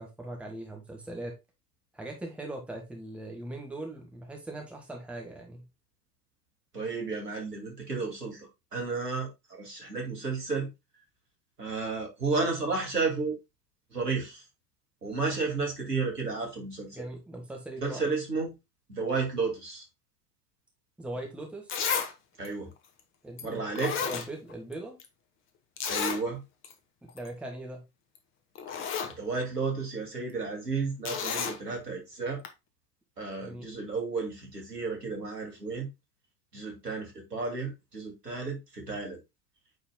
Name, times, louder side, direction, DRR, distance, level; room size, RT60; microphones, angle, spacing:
voice 1, 0.0-1.3 1.9-5.6 16.9-18.0 21.0-21.7 23.2-23.6 23.9-25.0 27.1-27.8 33.4-33.7, right 1 dB, ahead, 1.5 m, -40 dB
voice 2, 6.7-10.7 11.6-13.4 13.9-14.4 15.0-17.0 17.8-18.5 18.9-19.9 22.4-22.7 23.4-24.0 25.9-26.4 29.1-32.4 33.2-35.9 36.5-39.2, right 4 dB, 80° right, 2.4 m, -32 dB
Zipper (clothing), 21.2-21.3 21.7-22.1 22.4-22.5 23.4-23.5 23.8-24.7 25.0-25.1 25.8-26.2 26.6-26.7 27.1-27.3 28.2-28.3 28.6-29.1 31.0-31.6 32.4-32.5, left 7 dB, 25° left, 1.1 m, -31 dB
8.9 x 4.9 x 2.2 m
figure-of-eight pair, 85°, 47 cm